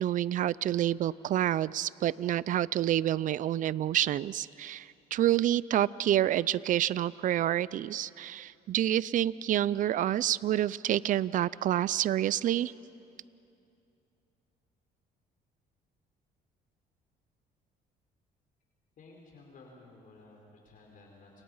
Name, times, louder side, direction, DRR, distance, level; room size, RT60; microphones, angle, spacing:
voice 1, 0.0-12.7, right 12 dB, 50° right, 20 dB, 0.5 m, -28 dB
voice 2, 19.0-21.4, left 3 dB, 50° left, -1 dB, 5.0 m, -54 dB
30.0 x 27.0 x 5.7 m, 2.6 s
cardioid pair, 110°, 17 cm